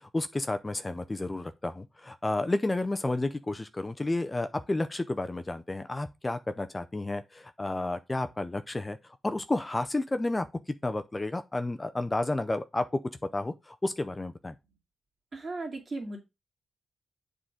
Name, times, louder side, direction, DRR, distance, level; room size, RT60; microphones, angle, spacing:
voice 1, 0.0-13.0 13.3-14.5, left 2 dB, 20° left, 0.5 m, -31 dB
voice 2, 15.3-16.2, right 2 dB, 40° right, 2.4 m, -36 dB
7.5 x 3.8 x 4.8 m
cardioid pair, 100°, 0 cm